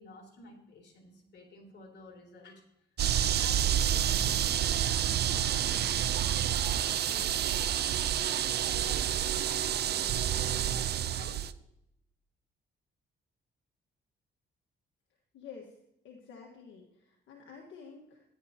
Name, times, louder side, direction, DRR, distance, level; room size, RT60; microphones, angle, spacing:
voice 1, 0.0-2.6 3.4-7.3 7.7-11.4, left 3 dB, 55° left, -1 dB, 3.6 m, -51 dB
sound 1, 3.0-11.5, right 10 dB, 55° right, 0.5 m, -29 dB
voice 2, 15.3-15.7 16.0-18.2, left 6 dB, 75° left, -1 dB, 1.6 m, -49 dB
14.0 x 10.5 x 2.9 m, 0.82 s
cardioid pair, 90°, 20 cm